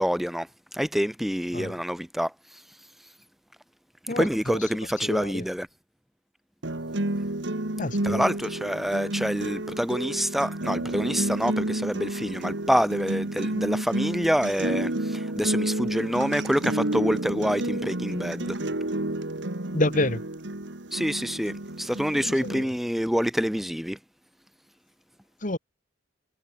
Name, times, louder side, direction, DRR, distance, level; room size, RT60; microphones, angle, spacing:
voice 1, 0.0-2.6 4.2-5.7 8.0-18.6 20.9-24.0, equal, ahead, 0.8 m, -27 dB
voice 2, 4.1-4.6 5.0-5.4 7.8-8.2 19.7-20.2 22.2-22.6 25.4-25.6, left 1 dB, 45° left, 2.6 m, -28 dB
sound 1, 6.6-22.6, right 1 dB, 80° right, 2.3 m, -30 dB
head